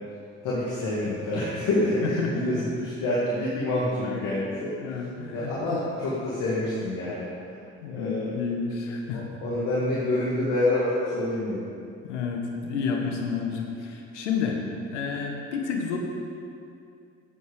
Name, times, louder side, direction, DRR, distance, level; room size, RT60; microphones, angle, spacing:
voice 1, 0.4-4.7 5.3-7.3 7.9-8.3 9.1-11.7, left 1 dB, 65° left, -7 dB, 2.0 m, -27 dB
voice 2, 2.0-2.6 4.0-4.2 4.8-5.5 7.8-9.3 12.0-14.6 14.9-16.0, left 5 dB, 85° left, 2 dB, 1.3 m, -30 dB
9.7 x 8.2 x 5.0 m, 2.5 s
hypercardioid pair, 60°, 35 cm